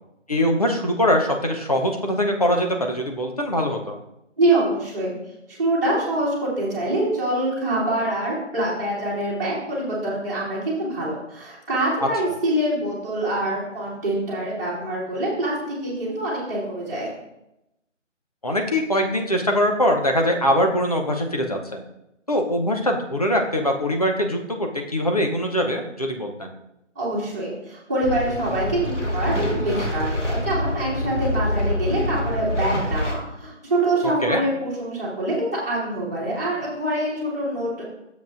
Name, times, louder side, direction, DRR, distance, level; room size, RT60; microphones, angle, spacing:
voice 1, 0.3-4.0 18.4-21.8 22.3-26.5 34.0-34.4, equal, 30° left, 2 dB, 0.7 m, -22 dB
voice 2, 4.4-5.2 5.5-17.1 27.0-37.8, right 1 dB, 15° right, -8 dB, 1.8 m, -25 dB
sound 1, 28.0-33.1, left 1 dB, 70° left, 1.8 m, -26 dB
10.0 x 7.3 x 2.5 m, 0.87 s
figure-of-eight pair, 165°, 37 cm